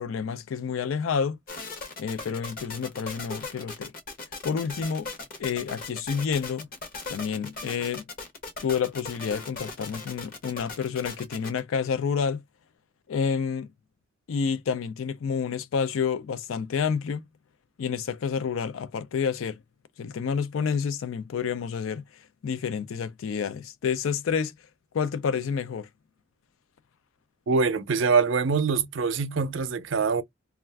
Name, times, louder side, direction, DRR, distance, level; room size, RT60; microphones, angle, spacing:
voice 1, 0.0-1.4 2.0-3.9 4.4-5.1 5.4-6.7 7.1-8.0 8.6-12.4 13.1-13.7 14.3-17.2 17.8-19.6 20.0-22.0 22.4-24.5 24.9-25.9, left 6 dB, 85° left, 0.4 m, -29 dB
sound 1, 1.5-11.6, left 3 dB, 45° left, 0.9 m, -38 dB
voice 2, 27.5-30.2, right 5 dB, 65° right, 0.5 m, -24 dB
2.4 x 2.2 x 3.3 m
head